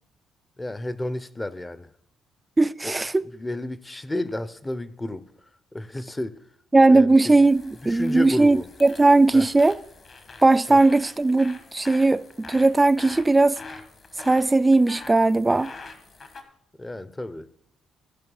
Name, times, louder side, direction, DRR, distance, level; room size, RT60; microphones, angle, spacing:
voice 1, 0.6-1.9 2.8-5.3 5.7-6.4 6.9-7.4 7.8-8.7 9.3-9.5 10.7-10.8 16.8-17.5, left 1 dB, 15° left, 0.7 m, -32 dB
voice 2, 2.6-3.2 6.7-9.8 10.4-13.6 14.2-15.7, right 2 dB, 15° right, 0.4 m, -18 dB
sound 1, 7.4-16.4, left 4 dB, 45° left, 1.5 m, -45 dB
15.5 x 5.4 x 5.5 m
cardioid pair, 90°, 0 cm